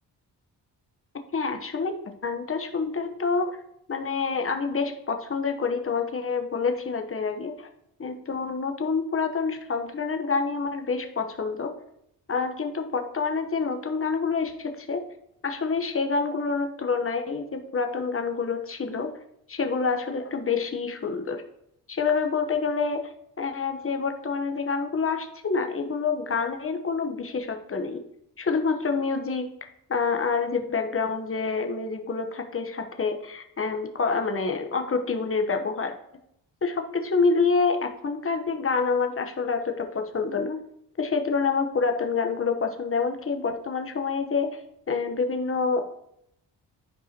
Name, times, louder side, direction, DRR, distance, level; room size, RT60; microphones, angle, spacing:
voice 1, 1.3-1.9 2.2-3.6 3.9-7.7 8.0-11.7 12.3-15.1 15.4-19.1 19.5-21.4 21.9-28.0 28.4-29.5 29.9-35.9 36.6-40.6 41.0-44.6 44.9-45.9, left 4 dB, 30° left, 6 dB, 1.1 m, -27 dB
11.0 x 4.6 x 2.9 m, 0.76 s
cardioid pair, 55°, 42 cm